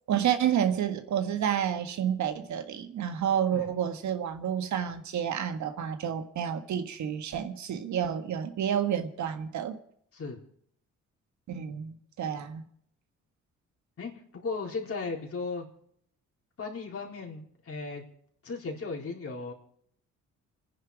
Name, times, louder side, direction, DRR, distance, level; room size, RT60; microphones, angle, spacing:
voice 1, 0.1-9.8 11.5-12.7, right 9 dB, 70° right, 1.6 m, -30 dB
voice 2, 14.0-15.7 16.6-18.0 18.4-19.5, left 4 dB, 50° left, 4.2 m, -36 dB
28.5 x 10.5 x 4.8 m
cardioid pair, 90°, 30 cm